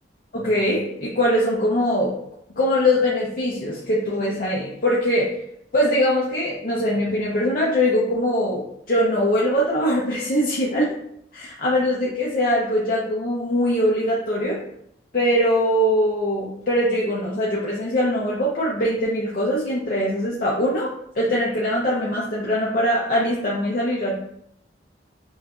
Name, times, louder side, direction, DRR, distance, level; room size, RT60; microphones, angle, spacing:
voice 1, 0.3-2.2 2.5-5.3 5.7-10.9 11.3-14.6 15.1-24.2, equal, 50° left, -5 dB, 0.6 m, -22 dB
5.7 x 2.6 x 2.4 m, 0.74 s
head